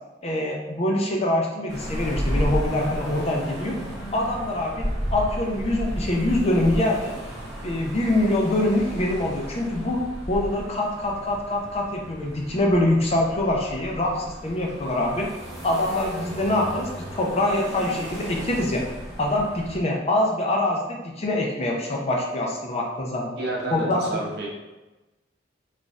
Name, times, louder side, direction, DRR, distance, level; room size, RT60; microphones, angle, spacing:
voice 1, 0.2-3.8 4.1-7.1 7.6-15.3 15.6-18.8 19.2-23.3 23.7-24.2, left 1 dB, 35° left, -1 dB, 0.5 m, -24 dB
sound 1, 1.7-19.8, equal, ahead, 1.1 m, -33 dB
voice 2, 23.4-24.5, right 2 dB, 65° right, -4 dB, 0.9 m, -30 dB
3.9 x 2.5 x 2.3 m, 1.1 s
head